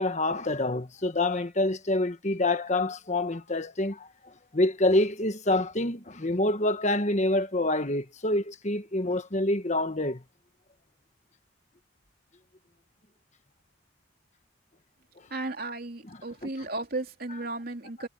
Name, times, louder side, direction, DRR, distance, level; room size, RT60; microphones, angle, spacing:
voice 1, 0.0-4.1 4.5-10.2, left 2 dB, 40° left, 1.4 m, -26 dB
voice 2, 15.3-18.1, right 2 dB, 50° right, 3.0 m, -34 dB
head